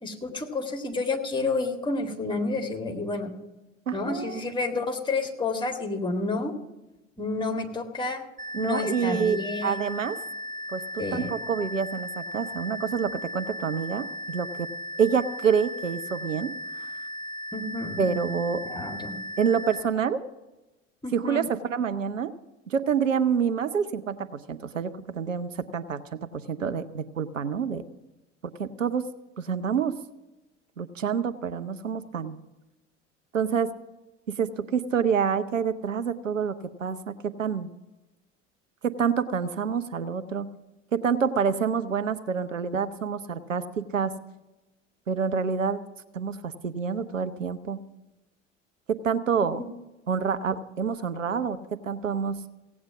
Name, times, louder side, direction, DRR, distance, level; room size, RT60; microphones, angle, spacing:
voice 1, 0.0-3.3 3.9-6.5 7.2-8.2 8.6-9.8 11.0-11.3 17.5-18.2 18.7-19.2 21.0-21.5 49.6-49.7, left 3 dB, 10° left, 3 dB, 2.1 m, -30 dB
voice 2, 3.9-4.4 8.5-10.2 10.7-14.7 15.0-16.5 18.0-18.6 19.4-20.2 21.1-22.3 22.7-27.8 28.6-29.1 29.4-29.9 30.8-32.4 33.3-33.7 34.3-37.7 38.8-40.5 40.9-44.1 45.1-45.8 46.1-47.8 48.9-49.6 50.1-52.4, right 6 dB, 85° right, 10 dB, 0.7 m, -27 dB
sound 1, 8.4-19.8, equal, 20° right, 6.1 m, -37 dB
17.0 x 8.7 x 7.1 m, 1.0 s
figure-of-eight pair, 70°, 37 cm